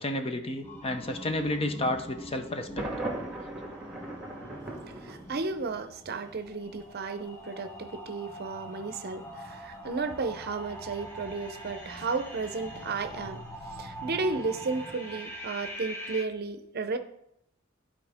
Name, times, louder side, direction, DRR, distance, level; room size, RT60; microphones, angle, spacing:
voice 1, 0.0-2.8, left 1 dB, 30° left, 6 dB, 0.7 m, -31 dB
sound 1, 0.6-16.2, right 1 dB, 10° left, 1.0 m, -43 dB
Thunder, 2.8-5.8, right 1 dB, 5° right, 1.6 m, -38 dB
voice 2, 5.0-13.4 13.8-17.0, right 4 dB, 50° right, 9 dB, 0.6 m, -33 dB
11.5 x 4.3 x 3.5 m, 0.76 s
head